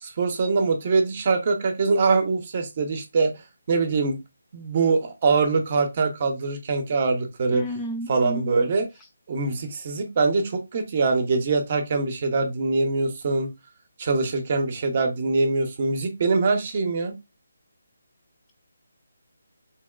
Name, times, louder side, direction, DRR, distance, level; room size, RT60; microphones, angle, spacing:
voice 1, 0.0-3.3 3.7-4.2 4.5-7.6 8.1-8.9 9.3-13.5 14.0-17.1, right 4 dB, 40° right, 0.7 m, -23 dB
voice 2, 7.5-8.5, equal, 10° left, 0.4 m, -32 dB
2.9 x 2.9 x 2.3 m
figure-of-eight pair, 160°, 0 cm